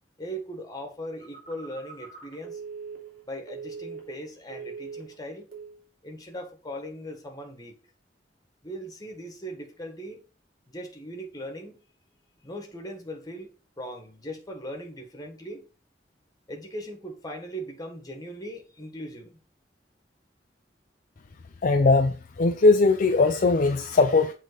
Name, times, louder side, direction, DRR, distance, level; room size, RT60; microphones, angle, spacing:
voice 1, 0.2-2.6 3.2-5.5 6.0-7.8 8.6-10.2 10.7-11.8 12.4-15.6 16.5-19.4, equal, 20° left, 1.6 m, -39 dB
Telephone, 1.2-4.2 4.5-5.2 5.5-5.8, right 5 dB, 55° right, 2.7 m, -41 dB
voice 2, 21.6-24.3, left 3 dB, 50° left, 0.5 m, -20 dB
7.4 x 3.7 x 5.1 m
head